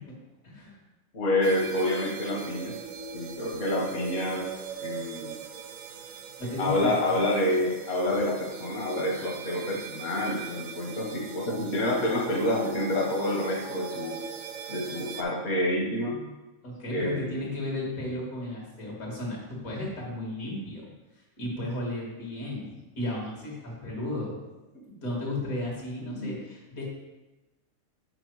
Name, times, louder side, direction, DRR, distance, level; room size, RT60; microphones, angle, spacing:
voice 1, 0.4-0.8 4.9-5.1 6.4-7.2 16.6-20.8 21.4-24.4 24.9-26.8, left 1 dB, 85° left, -3 dB, 2.3 m, -34 dB
voice 2, 1.1-2.7 3.1-4.5 4.8-5.3 6.6-14.2 14.7-16.2 16.9-17.2 26.1-26.3, left 1 dB, 65° left, -3 dB, 1.4 m, -28 dB
sound 1, 1.4-15.2, right 7 dB, 75° right, 1.0 m, -40 dB
6.3 x 5.0 x 4.6 m, 1.1 s
omnidirectional pair, 1.4 m